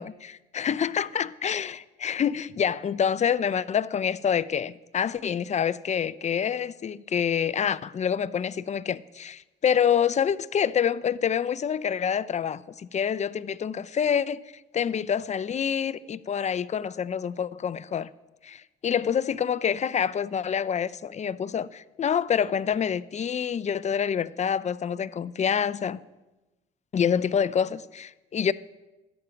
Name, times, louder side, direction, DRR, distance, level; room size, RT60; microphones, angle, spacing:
voice 1, 0.0-14.4 14.7-18.1 18.4-26.0 26.9-28.5, left 8 dB, 35° left, 0.5 m, -27 dB
13.0 x 9.0 x 5.8 m
cardioid pair, 90°, 20 cm